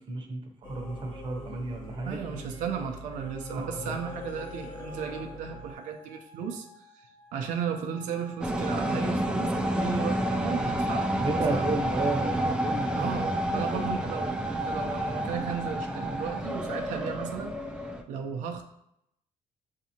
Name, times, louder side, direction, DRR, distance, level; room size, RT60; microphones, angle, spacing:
voice 1, 0.0-2.2 3.5-4.0 11.2-13.3 13.5-13.9, right 3 dB, 40° right, 2 dB, 0.8 m, -33 dB
Singing / Musical instrument, 0.6-5.7, left 1 dB, 35° left, 0.9 m, -42 dB
voice 2, 2.0-11.8 12.9-17.5 18.1-18.6, right 6 dB, 90° right, 2 dB, 0.6 m, -35 dB
sound 1, 3.8-14.9, left 1 dB, 75° left, 1.3 m, -54 dB
sound 2, 8.4-18.0, right 1 dB, 5° right, 0.3 m, -29 dB
7.0 x 2.7 x 2.8 m, 0.79 s
cardioid pair, 160°, 13 cm